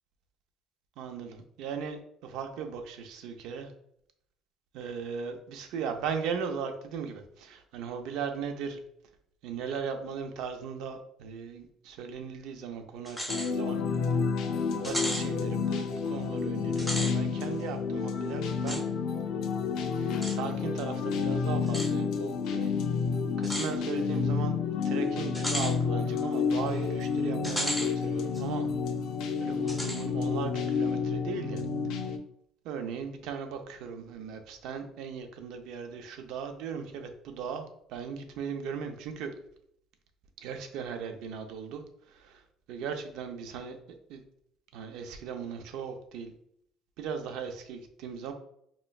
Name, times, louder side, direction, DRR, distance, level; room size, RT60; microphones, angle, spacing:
voice 1, 1.0-3.7 4.7-8.8 9.4-13.8 14.7-18.8 20.0-22.7 23.4-24.6 24.8-28.7 29.4-31.6 32.6-37.6 37.9-39.3 40.4-41.8 42.1-42.4 42.7-43.8 44.1-44.2 44.7-46.3 47.0-48.3, right 6 dB, 80° right, 6 dB, 0.5 m, -38 dB
sound 1, 13.1-13.5 13.9-14.0 14.8-15.3 16.7-17.1 18.7-18.8 20.2-20.4 21.7-21.9 23.4-23.7 25.3-25.7 27.4-27.9 28.3-28.4 29.7-30.0, equal, 5° left, 0.6 m, -33 dB
sound 2, 13.3-32.2, left 5 dB, 75° left, 0.4 m, -30 dB
4.2 x 3.0 x 2.3 m, 0.71 s
cardioid pair, 165°, 0 cm